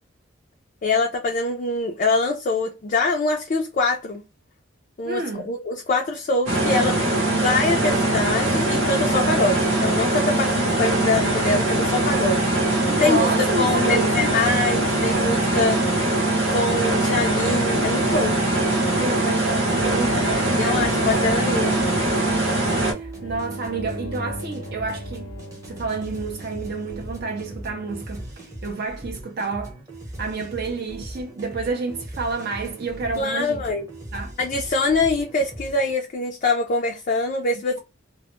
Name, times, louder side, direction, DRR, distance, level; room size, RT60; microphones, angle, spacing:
voice 1, 0.8-4.2 5.0-12.5 13.0-15.8 16.5-18.4 20.6-21.7 33.2-33.9 34.4-37.8, left 3 dB, 40° left, 0.3 m, -24 dB
voice 2, 5.0-5.5 12.8-14.4 18.9-21.1 22.9-25.3 25.7-29.8 30.2-33.8 34.1-34.3 34.8-34.9, right 3 dB, 50° right, 0.4 m, -29 dB
sound 1, 6.5-22.9, right 1 dB, 85° right, 0.8 m, -22 dB
sound 2, 19.8-35.9, right 1 dB, 15° right, 0.8 m, -39 dB
sound 3, 23.1-28.5, equal, 90° left, 0.8 m, -39 dB
2.1 x 2.0 x 2.9 m
head